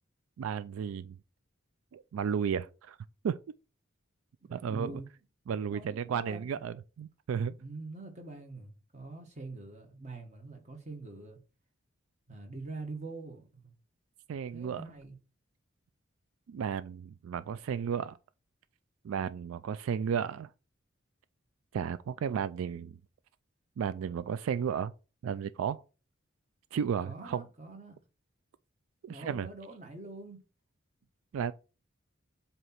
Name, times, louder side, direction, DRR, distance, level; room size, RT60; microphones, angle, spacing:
voice 1, 0.4-1.1 1.9-3.0 3.2-3.4 4.5-4.9 5.5-7.5 14.3-14.8 16.5-18.2 19.0-20.5 21.7-23.0 23.8-24.9 25.2-25.8 26.7-27.4 29.0-29.5 31.3-31.5, right 7 dB, 90° right, 0.3 m, -33 dB
voice 2, 4.5-5.1 5.6-6.5 7.6-11.4 12.3-13.7 14.5-15.1 27.0-28.0 29.1-30.4, right 2 dB, 35° right, 1.4 m, -44 dB
7.8 x 2.9 x 4.3 m
head